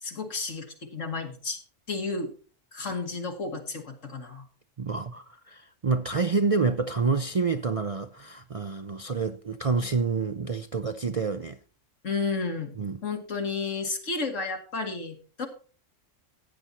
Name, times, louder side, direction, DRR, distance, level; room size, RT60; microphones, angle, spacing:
voice 1, 0.0-1.6 1.9-2.3 2.7-4.4 12.0-12.7 13.0-15.5, left 4 dB, 75° left, 2.4 m, -32 dB
voice 2, 4.8-11.6 12.8-13.0, right 4 dB, 45° right, 0.5 m, -28 dB
15.0 x 9.8 x 2.9 m
omnidirectional pair, 1.3 m